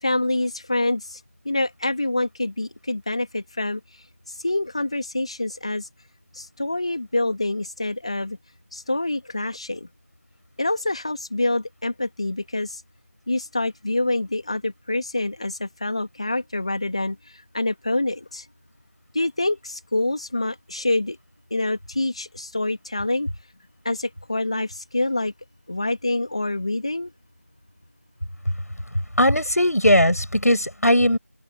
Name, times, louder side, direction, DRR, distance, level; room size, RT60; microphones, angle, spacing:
voice 1, 0.0-1.2 1.4-3.8 4.4-5.9 6.3-8.4 8.7-9.9 10.6-12.8 13.3-17.2 17.5-18.4 19.1-21.2 21.5-23.3 23.8-25.3 25.7-27.1, left 2 dB, 25° left, 3.1 m, -26 dB
voice 2, 29.2-31.2, equal, 90° left, 7.4 m, -18 dB
figure-of-eight pair, 175°, 8 cm